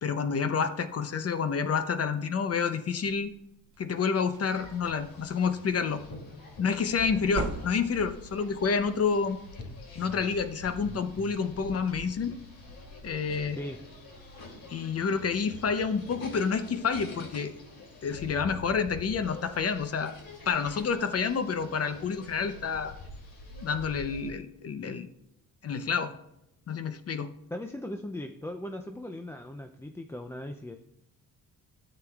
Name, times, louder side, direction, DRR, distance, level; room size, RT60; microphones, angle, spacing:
voice 1, 0.0-3.3 3.8-6.0 6.6-9.4 9.9-12.4 13.0-13.6 14.7-17.5 18.0-20.1 20.5-22.9 23.6-25.1 25.6-26.1 26.7-27.3, left 5 dB, 45° left, 10 dB, 0.7 m, -29 dB
sound 1, 3.0-3.3 3.8-3.9 4.2-5.3 7.0-8.2, right 5 dB, 55° right, 0.8 m, -38 dB
sound 2, 4.5-24.3, left 2 dB, 75° left, 2.7 m, -46 dB
voice 2, 13.5-13.9 27.5-30.8, left 1 dB, 10° left, 5 dB, 0.3 m, -38 dB
13.0 x 7.8 x 2.3 m, 0.83 s
cardioid pair, 110°, 36 cm